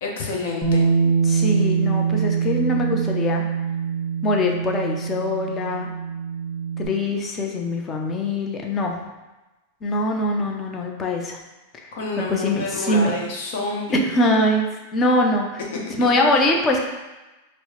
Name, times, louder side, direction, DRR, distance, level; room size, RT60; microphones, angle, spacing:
voice 1, 0.0-0.9 11.9-14.0, left 3 dB, 70° left, -1 dB, 0.8 m, -28 dB
Bass guitar, 0.6-6.9, right 6 dB, ahead, 1.3 m, -23 dB
voice 2, 1.2-3.4 4.2-5.9 6.8-9.0 9.8-11.4 11.8-11.9 12.2-13.1 13.9-14.7 14.9-15.6 16.0-16.9, left 1 dB, 25° left, 1 dB, 0.5 m, -22 dB
4.5 x 2.0 x 2.9 m, 1.1 s
hypercardioid pair, 125°, 0 cm